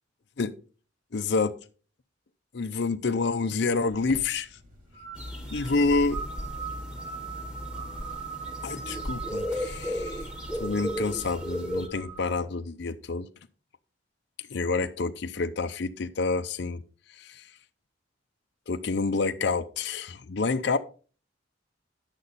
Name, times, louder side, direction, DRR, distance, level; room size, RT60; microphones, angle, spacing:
voice 1, 1.1-1.5 2.5-4.5 5.5-6.2 8.6-10.3 10.6-13.3 14.5-16.8 17.2-17.5 18.7-20.8, left 3 dB, 65° left, 0.6 m, -28 dB
sound 1, 3.9-12.3, right 5 dB, 45° right, 2.6 m, -41 dB
sound 2, 5.2-11.9, equal, 5° right, 1.4 m, -35 dB
10.5 x 8.3 x 4.1 m
head